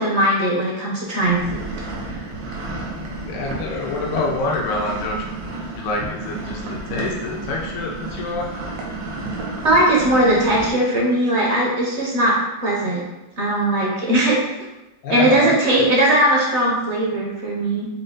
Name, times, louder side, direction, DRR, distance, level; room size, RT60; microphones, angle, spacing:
voice 1, 0.0-1.6 2.0-2.2 9.6-13.0 13.4-14.4 15.1-17.9, right 1 dB, 50° right, -4 dB, 1.0 m, -19 dB
sound 1, 1.2-10.7, right 2 dB, 80° right, 1.5 m, -31 dB
voice 2, 3.0-5.3 5.7-8.5 15.0-15.8, left 2 dB, 75° left, 0 dB, 1.2 m, -27 dB
5.1 x 2.2 x 3.7 m, 0.97 s
omnidirectional pair, 1.9 m